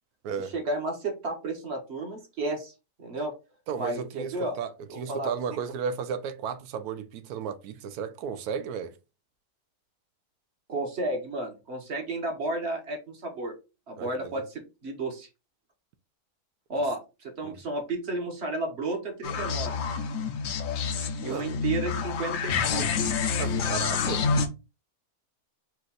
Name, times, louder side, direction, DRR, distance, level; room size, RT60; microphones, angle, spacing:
voice 1, 0.4-2.7 3.0-3.3 3.8-4.6 4.9-5.3 10.7-13.5 13.9-15.3 16.7-19.7 21.2-22.9, right 2 dB, 45° right, 1.2 m, -32 dB
voice 2, 3.7-4.7 5.0-9.0 14.0-14.4 17.4-17.6 21.3-21.5 23.4-24.3, right 6 dB, 75° right, 1.1 m, -34 dB
sound 1, 19.2-24.5, left 5 dB, 65° left, 1.0 m, -28 dB
4.4 x 2.5 x 4.0 m
omnidirectional pair, 1.7 m